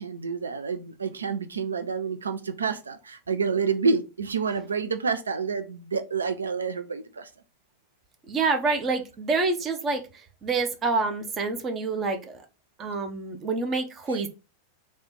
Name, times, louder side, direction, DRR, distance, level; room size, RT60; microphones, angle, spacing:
voice 1, 0.0-7.3, right 5 dB, 75° right, 0.5 m, -28 dB
voice 2, 8.3-10.0 10.4-12.4 12.8-14.3, right 3 dB, 25° right, 0.8 m, -27 dB
3.2 x 3.0 x 4.4 m
figure-of-eight pair, 90°, 0 cm